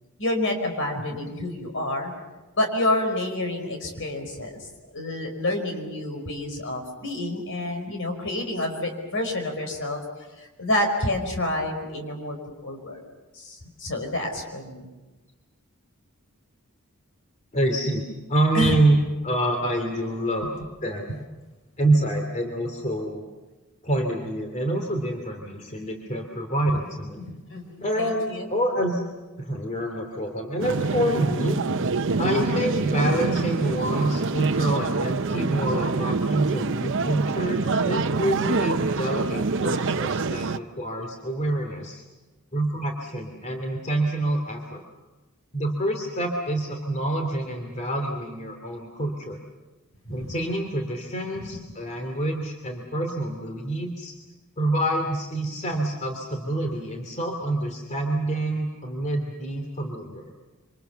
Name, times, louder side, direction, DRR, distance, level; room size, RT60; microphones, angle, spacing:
voice 1, 0.2-2.1 2.6-4.6 4.9-10.0 10.4-12.4 12.6-13.0 13.3-14.9 18.5-18.8 20.4-20.5 21.1-21.2 27.5-28.5 50.0-50.3 51.3-51.5, left 1 dB, 60° left, 4 dB, 5.1 m, -28 dB
voice 2, 17.5-18.0 18.3-20.5 20.8-21.0 21.8-23.2 23.8-27.2 27.8-29.0 29.4-31.6 32.2-42.0 42.5-44.8 45.5-49.4 50.1-54.1 54.6-60.3, right 1 dB, 35° left, 3 dB, 2.7 m, -27 dB
sound 1, 30.6-40.6, right 3 dB, 60° right, 0.8 m, -26 dB
27.5 x 25.5 x 7.0 m, 1.1 s
head